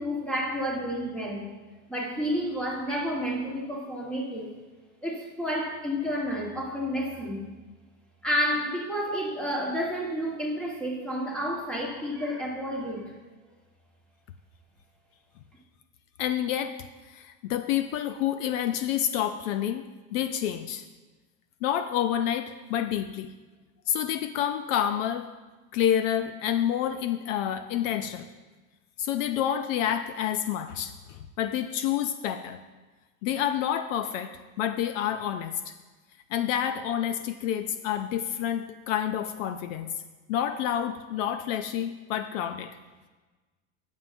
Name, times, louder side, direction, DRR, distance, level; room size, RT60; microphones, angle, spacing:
voice 1, 0.0-1.5 1.9-4.5 5.0-7.4 8.2-13.1, equal, 5° left, -3 dB, 1.4 m, -30 dB
voice 2, 16.2-16.7 17.0-20.8 21.6-23.3 23.9-25.3 25.7-28.3 29.0-32.6 33.2-34.3 34.6-35.7 36.3-39.9 40.3-42.8, left 10 dB, 65° left, 9 dB, 0.6 m, -28 dB
18.0 x 7.4 x 2.6 m, 1.3 s
supercardioid pair, 170°, 42 cm